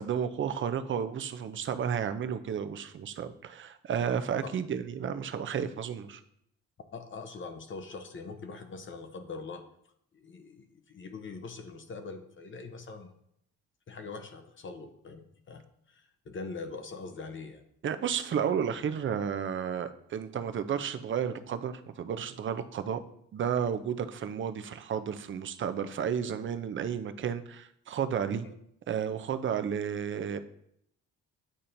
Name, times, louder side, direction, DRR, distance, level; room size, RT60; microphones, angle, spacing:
voice 1, 0.0-6.2 17.8-23.0 23.3-28.5 28.9-30.4, right 8 dB, 40° right, 10 dB, 0.5 m, -32 dB
voice 2, 6.9-9.6 10.1-13.1 13.9-17.6 28.4-28.5, left 4 dB, 40° left, 7 dB, 0.7 m, -43 dB
8.6 x 4.2 x 2.6 m, 0.72 s
cardioid pair, 90°, 30 cm